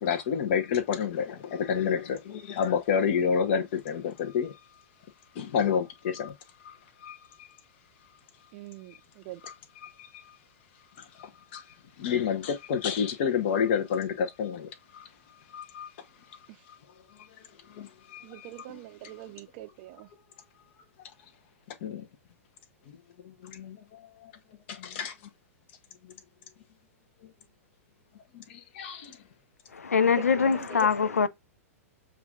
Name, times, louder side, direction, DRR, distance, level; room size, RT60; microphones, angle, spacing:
voice 1, 0.0-4.5 5.3-6.3 6.6-6.7 7.0-7.2 9.8-10.2 11.0-11.6 12.0-15.1 15.5-15.9 17.7-18.5 21.8-22.1 22.9-23.0 23.2-24.3 24.7-25.1 26.0-26.1 28.3-29.2, left 7 dB, 45° left, 0.9 m, -29 dB
voice 2, 8.5-9.4 16.5-16.6 18.2-20.1 30.0-30.9, right 16 dB, 40° right, 0.6 m, -43 dB
voice 3, 29.7-31.3, left 6 dB, 70° left, 0.4 m, -23 dB
7.0 x 2.6 x 2.4 m
figure-of-eight pair, 105°, 8 cm